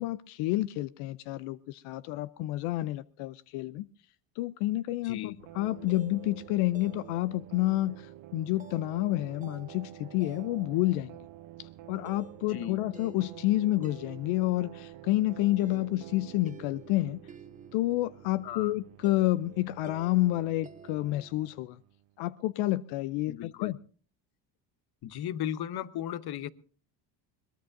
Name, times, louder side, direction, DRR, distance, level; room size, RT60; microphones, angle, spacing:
voice 1, 0.0-3.9 4.4-11.2 11.6-17.2 17.7-21.8 22.2-23.8, left 17 dB, 80° left, 0.6 m, -29 dB
voice 2, 5.0-5.4 12.5-12.8 18.4-18.7 23.3-23.7 25.0-26.5, left 11 dB, 50° left, 0.9 m, -36 dB
sound 1, 5.4-22.1, right 14 dB, 70° right, 1.0 m, -50 dB
sound 2, 5.6-21.5, right 5 dB, 15° right, 0.8 m, -53 dB
22.5 x 19.0 x 2.6 m
cardioid pair, 100°, 48 cm